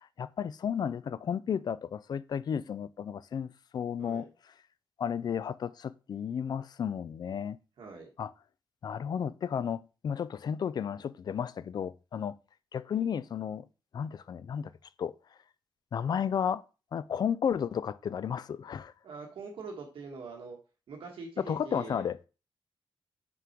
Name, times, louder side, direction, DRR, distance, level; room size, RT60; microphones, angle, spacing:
voice 1, 0.2-4.3 5.0-7.6 8.2-8.3 8.8-12.4 12.7-13.7 13.9-14.7 15.0-15.1 15.9-16.6 16.9-18.9 21.4-22.2, left 8 dB, 50° left, 0.3 m, -33 dB
voice 2, 7.8-8.1 12.9-13.0 19.0-20.6 20.9-22.1, right 4 dB, 80° right, 1.3 m, -43 dB
5.8 x 3.8 x 4.5 m
wide cardioid pair, 150°, 9 cm